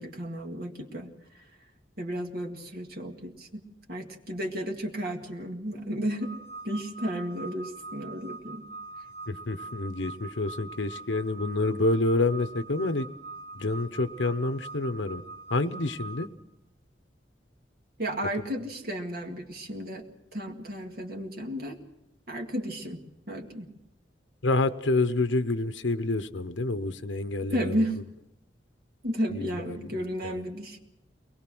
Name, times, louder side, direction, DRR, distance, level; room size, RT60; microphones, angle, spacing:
voice 1, 0.0-1.4 2.0-3.6 3.9-6.3 6.6-8.6 18.0-20.0 20.3-21.8 22.3-23.7 27.5-28.0 29.0-30.8, equal, 55° right, 2 dB, 2.0 m, -33 dB
sound 1, 6.2-16.3, right 3 dB, 75° right, 3.9 m, -43 dB
voice 2, 9.3-13.1 13.5-15.2 15.5-16.3 24.4-27.8 29.3-29.9 30.2-30.4, left 2 dB, 85° left, 10 dB, 1.0 m, -28 dB
23.0 x 20.0 x 6.2 m, 0.86 s
head